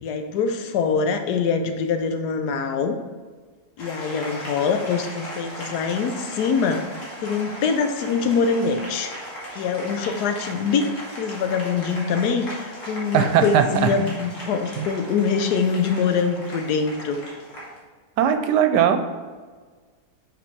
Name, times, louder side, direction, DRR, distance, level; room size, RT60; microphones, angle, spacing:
voice 1, 0.0-3.0 3.8-6.9 7.2-9.1 9.5-10.9 11.2-17.2, left 5 dB, 75° left, 7 dB, 1.1 m, -24 dB
Applause, 3.8-17.8, equal, 50° left, 1.8 m, -37 dB
voice 2, 13.1-13.9 14.8-14.9 18.2-19.0, right 8 dB, 85° right, 8 dB, 1.2 m, -19 dB
5.8 x 4.2 x 4.6 m, 1.4 s
omnidirectional pair, 1.8 m